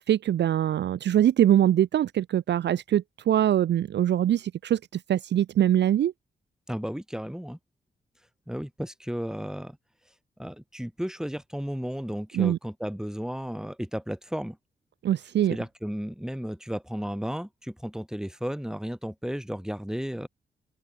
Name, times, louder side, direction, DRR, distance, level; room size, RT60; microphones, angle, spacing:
voice 1, 0.1-4.8 5.1-6.1 12.4-12.6 15.0-15.6, right 11 dB, 60° right, 0.5 m, -23 dB
voice 2, 6.7-7.6 8.5-9.8 10.4-14.6 15.5-20.3, equal, 5° right, 6.7 m, -33 dB
open air
hypercardioid pair, 40°, 20 cm